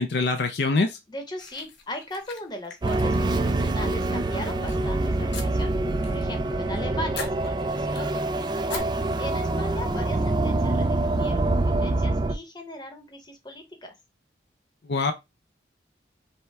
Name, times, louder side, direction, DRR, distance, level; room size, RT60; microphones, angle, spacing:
voice 1, 0.0-1.0 14.9-15.1, left 3 dB, 65° left, 0.5 m, -24 dB
voice 2, 1.1-5.7 6.1-13.9, left 1 dB, 25° left, 0.9 m, -38 dB
sound 1, 1.4-3.9 4.2-4.7 5.3-6.2 6.5-6.8 7.1-8.2 8.7-8.8, left 4 dB, 90° left, 1.2 m, -41 dB
sound 2, 2.8-12.3, right 2 dB, 25° right, 0.3 m, -25 dB
sound 3, 4.3-7.1 7.4-7.5, right 1 dB, 60° right, 1.6 m, -43 dB
5.4 x 2.2 x 3.4 m
head